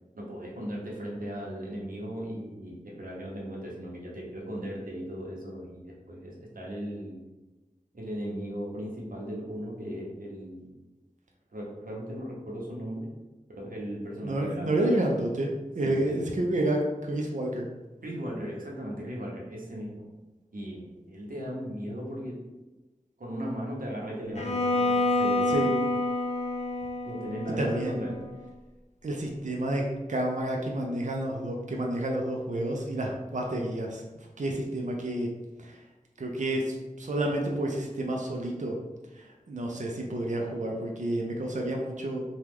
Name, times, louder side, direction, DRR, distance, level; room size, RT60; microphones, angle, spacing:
voice 1, 0.1-7.2 7.9-10.8 11.5-13.1 13.5-14.9 15.8-16.2 18.0-20.0 20.5-22.4 23.2-25.7 27.0-28.2, equal, 85° right, -3 dB, 0.8 m, -37 dB
voice 2, 14.2-17.6 25.5-25.7 27.6-28.1 29.0-34.0 34.4-35.3 35.6-35.8 36.2-38.8 39.1-42.2, right 1 dB, 60° right, 0 dB, 0.5 m, -30 dB
Bowed string instrument, 24.4-28.4, left 2 dB, 50° left, 0.5 m, -28 dB
3.0 x 2.3 x 3.5 m, 1.1 s
wide cardioid pair, 40°, 14 cm